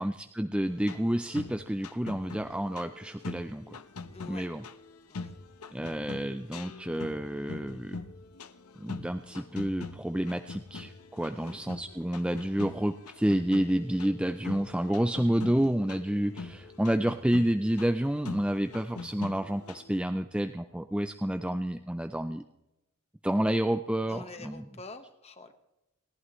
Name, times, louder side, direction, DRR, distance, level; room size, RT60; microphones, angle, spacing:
voice 1, 0.0-3.8 4.3-4.6 5.7-8.0 8.8-22.4 23.2-24.5, right 1 dB, 5° right, 8 dB, 0.4 m, -29 dB
sound 1, 0.6-20.0, left 4 dB, 90° left, 1.0 m, -44 dB
voice 2, 4.1-4.5 5.1-5.3 11.3-11.6 15.6-15.7 24.0-25.5, left 3 dB, 30° left, 8 dB, 1.3 m, -47 dB
29.5 x 11.5 x 3.1 m, 0.93 s
head